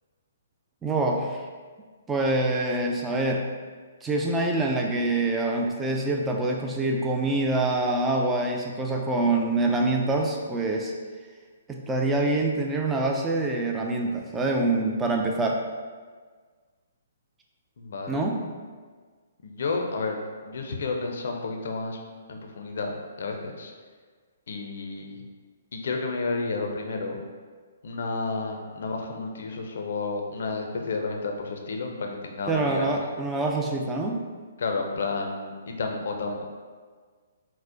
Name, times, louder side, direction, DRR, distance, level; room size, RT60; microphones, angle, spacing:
voice 1, 0.8-1.4 2.1-3.5 4.0-10.9 11.7-15.6 18.1-18.5 32.5-34.2, right 2 dB, 10° right, 1 dB, 0.4 m, -25 dB
voice 2, 17.8-18.3 19.4-20.2 20.4-22.0 22.3-22.9 23.2-23.7 24.5-25.3 25.7-27.2 27.8-33.0 34.6-36.4, left 3 dB, 65° left, 2 dB, 0.5 m, -31 dB
4.2 x 2.0 x 2.6 m, 1.5 s
hypercardioid pair, 135°, 0 cm